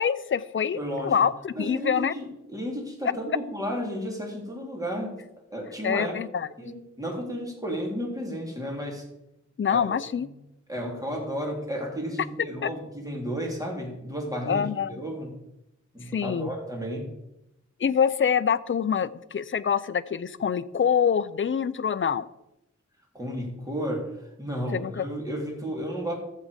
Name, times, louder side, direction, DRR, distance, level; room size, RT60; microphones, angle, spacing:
voice 1, 0.0-2.1 5.8-6.5 9.6-10.3 12.6-12.7 14.5-14.9 16.1-16.5 17.8-22.3 24.7-25.1, left 7 dB, 45° left, 14 dB, 0.5 m, -25 dB
voice 2, 0.7-1.2 1.5-5.2 5.5-6.1 6.6-9.0 9.7-9.9 10.7-15.3 15.9-17.1 23.1-24.1 24.4-26.1, equal, 10° right, -1 dB, 3.5 m, -33 dB
13.5 x 7.5 x 5.2 m, 0.89 s
wide cardioid pair, 65°, 29 cm